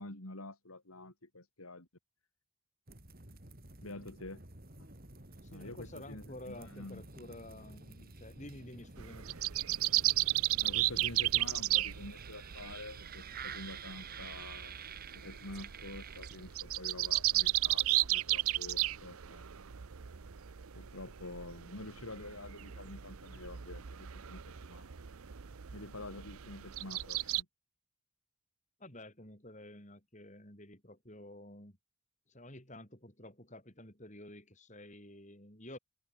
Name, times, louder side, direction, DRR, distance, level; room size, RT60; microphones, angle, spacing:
voice 1, 0.0-1.9 3.8-4.4 4.8-4.9 5.5-7.0 10.6-14.9 15.1-19.4 20.7-24.9 25.7-27.5, left 2 dB, 85° left, 4.0 m, -48 dB
sound 1, 2.9-16.8, right 5 dB, 45° right, 3.5 m, -50 dB
voice 2, 5.4-9.3 28.8-31.8 32.3-35.8, left 1 dB, 35° left, 6.6 m, -50 dB
sound 2, 9.0-27.4, right 15 dB, 80° right, 0.7 m, -35 dB
head